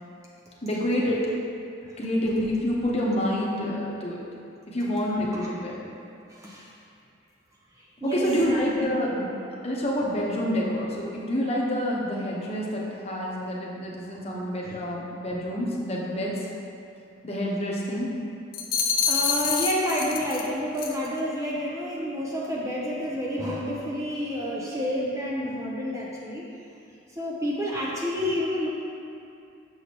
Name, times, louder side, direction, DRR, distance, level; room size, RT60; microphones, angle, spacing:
voice 1, 0.6-1.3 2.0-4.2 4.7-5.8 8.0-9.3 9.6-16.5 17.2-18.1, equal, 35° left, -4 dB, 0.9 m, -27 dB
voice 2, 6.3-6.7 7.8-9.0 14.6-14.9 19.1-26.4 27.1-28.7, equal, 15° right, -5 dB, 0.5 m, -29 dB
sound 1, 18.5-20.5 20.8-21.1, left 7 dB, 50° left, 0.5 m, -26 dB
6.5 x 6.1 x 2.9 m, 2.5 s
head